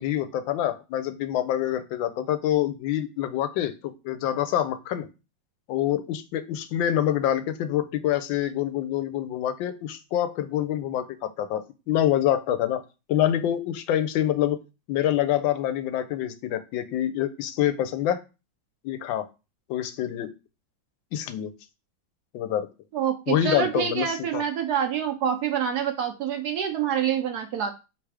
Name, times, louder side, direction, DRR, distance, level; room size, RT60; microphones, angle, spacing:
voice 1, 0.0-5.1 5.7-12.8 13.1-14.6 14.9-18.2 18.8-19.3 19.7-20.3 21.1-21.5 22.3-22.7 23.3-24.4, left 11 dB, 80° left, 11 dB, 1.3 m, -26 dB
voice 2, 22.9-27.7, right 8 dB, 70° right, 5 dB, 1.0 m, -26 dB
3.3 x 3.3 x 4.7 m, 0.29 s
omnidirectional pair, 2.1 m